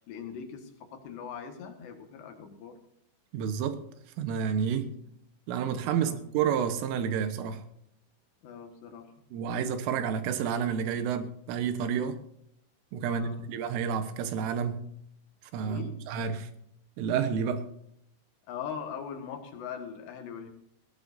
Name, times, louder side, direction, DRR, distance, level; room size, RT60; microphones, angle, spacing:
voice 1, 0.0-2.8 5.9-6.2 8.4-9.1 13.0-13.5 15.6-16.0 18.5-20.5, left 7 dB, 65° left, 4 dB, 3.5 m, -41 dB
voice 2, 3.3-3.8 4.2-4.9 5.5-7.6 9.3-12.2 12.9-14.9 15.5-16.5 17.0-17.7, right 7 dB, 80° right, 9 dB, 3.7 m, -30 dB
21.0 x 15.5 x 2.7 m, 0.72 s
omnidirectional pair, 5.8 m